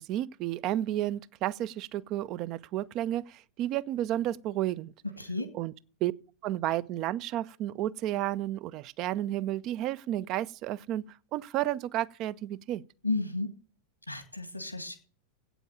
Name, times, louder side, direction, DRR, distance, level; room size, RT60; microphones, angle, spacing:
voice 1, 0.0-4.9 5.5-5.7 6.0-6.1 6.4-12.8, right 13 dB, 40° right, 0.4 m, -32 dB
voice 2, 5.2-5.5 13.0-13.5 14.1-15.0, left 3 dB, 85° left, 1.5 m, -33 dB
8.5 x 7.0 x 8.6 m
figure-of-eight pair, 90°, 0 cm